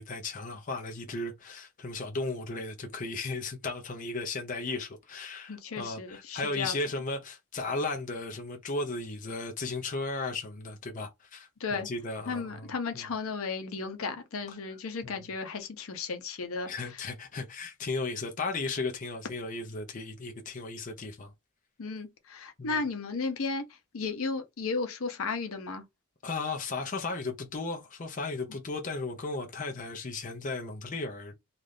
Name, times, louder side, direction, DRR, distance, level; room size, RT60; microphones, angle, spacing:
voice 1, 0.0-13.1 15.0-15.2 16.6-21.3 22.6-22.8 26.2-31.3, left 3 dB, 40° left, 0.5 m, -35 dB
voice 2, 5.5-6.7 11.6-11.9 12.3-17.1 21.8-25.8, left 4 dB, 80° left, 0.7 m, -34 dB
2.7 x 2.4 x 3.3 m
head